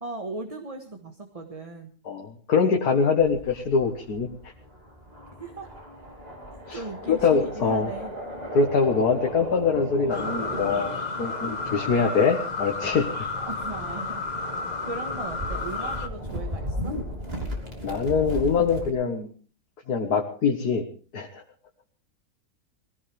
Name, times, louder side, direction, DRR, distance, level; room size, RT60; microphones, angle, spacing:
voice 1, 0.0-1.9 5.4-5.7 6.7-8.1 13.3-14.2 14.8-16.9, right 3 dB, 25° right, 4 dB, 1.5 m, -37 dB
voice 2, 2.1-4.3 6.7-6.8 7.1-7.9 8.5-13.1 17.8-19.3 19.9-20.8 21.1-21.4, left 5 dB, 85° left, 2 dB, 2.0 m, -23 dB
sound 1, 3.2-18.9, equal, 40° right, 3.3 m, -36 dB
sound 2, 10.1-16.1, left 4 dB, 30° left, 1.2 m, -32 dB
21.5 x 16.5 x 3.5 m, 0.40 s
omnidirectional pair, 1.6 m